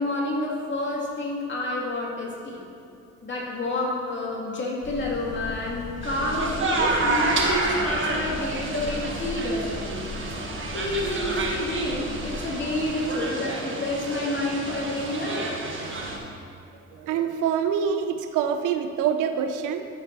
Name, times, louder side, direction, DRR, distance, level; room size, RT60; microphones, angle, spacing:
voice 1, 0.0-2.6 3.2-10.4 10.7-15.5 15.9-16.0, left 1 dB, 40° left, -3 dB, 2.1 m, -29 dB
sound 1, 4.8-12.9, left 2 dB, 55° left, 1.2 m, -38 dB
sound 2, 6.0-16.2, right 2 dB, 40° right, 1.3 m, -29 dB
voice 2, 16.9-19.9, right 7 dB, 90° right, 8 dB, 0.6 m, -25 dB
12.5 x 4.6 x 4.0 m, 2.6 s
cardioid pair, 90°, 30 cm